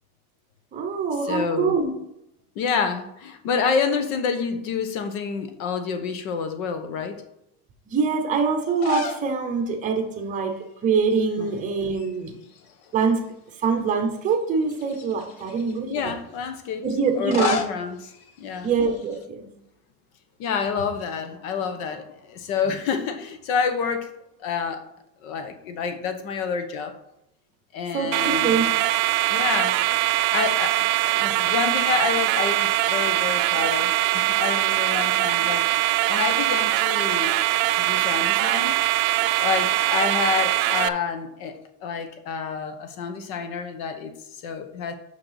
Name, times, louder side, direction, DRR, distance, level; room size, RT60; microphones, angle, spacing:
voice 1, 0.7-1.9 7.9-10.6 10.8-12.3 12.9-13.2 13.6-16.1 16.8-17.6 18.6-19.5 27.9-28.6, right 5 dB, 15° right, 4 dB, 0.8 m, -24 dB
voice 2, 1.2-1.8 2.5-7.2 11.4-11.5 15.9-16.9 17.2-18.1 18.4-18.7 20.4-24.1 24.4-24.8 25.2-26.9 27.7-28.6 29.3-29.9 30.3-37.4 37.7-38.8 39.4-44.9, left 6 dB, 65° left, 8 dB, 1.2 m, -28 dB
sound 1, 8.7-9.3 9.7-9.8 11.1-11.6 11.9-13.1 13.6-13.7 14.6-15.8 17.0-19.2, left 5 dB, 35° left, 0.6 m, -33 dB
sound 2, 28.1-40.9, right 16 dB, 65° right, 0.5 m, -22 dB
6.5 x 5.9 x 5.7 m, 0.84 s
cardioid pair, 175°, 44 cm